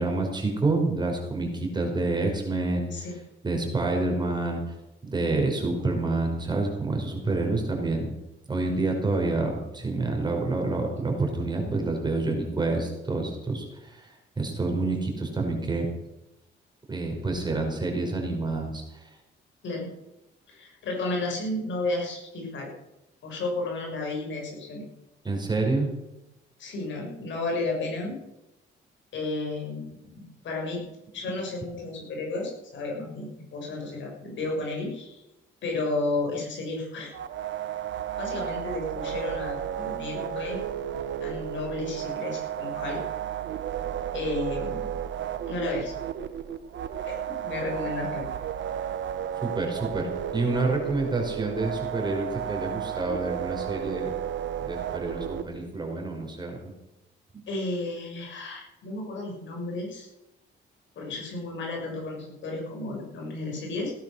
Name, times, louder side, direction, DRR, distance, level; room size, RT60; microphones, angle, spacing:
voice 1, 0.0-3.1 3.4-4.6 5.0-8.1 8.5-15.9 16.9-19.1 25.2-25.9 49.4-54.2 54.6-56.7 57.3-57.4, right 2 dB, 20° right, 1 dB, 5.3 m, -28 dB
voice 2, 20.5-22.7 23.2-24.9 25.5-25.7 26.6-28.2 29.1-30.8 31.1-35.2 35.6-37.1 38.2-40.6 41.2-43.0 44.1-44.9 45.5-45.9 47.0-47.2 47.4-48.3 57.5-60.1 60.9-63.9, left 2 dB, 70° left, 0 dB, 6.5 m, -32 dB
sound 1, 37.1-55.4, right 10 dB, 70° right, 1.3 m, -33 dB
17.5 x 10.5 x 6.6 m, 0.93 s
cardioid pair, 90°, 20 cm